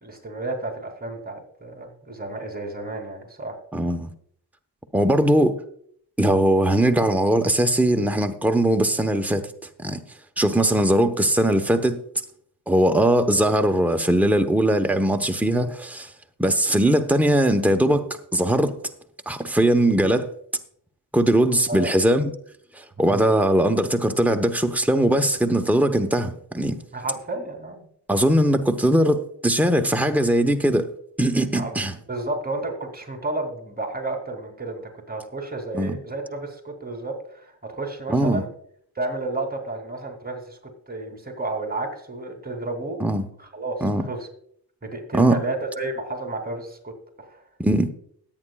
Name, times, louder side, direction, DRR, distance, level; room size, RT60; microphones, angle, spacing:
voice 1, 0.0-3.6 21.7-21.9 23.1-23.2 26.9-27.9 31.5-31.8 32.1-34.8 35.1-38.5 38.9-43.0 43.4-44.3 44.8-46.9 47.2-47.4, right 2 dB, 20° right, 3.0 m, -32 dB
voice 2, 3.7-4.1 4.9-5.6 6.2-9.4 9.8-10.0 10.4-12.0 12.7-16.1 16.4-18.0 18.3-18.7 19.3-20.3 21.1-22.3 22.7-26.8 28.1-30.9 31.2-31.9 35.7-36.0 38.1-38.4 43.0-43.2 43.8-44.1 45.1-45.3 47.6-47.9, right 1 dB, 5° right, 1.0 m, -20 dB
21.0 x 8.7 x 2.4 m
cardioid pair, 70°, 42 cm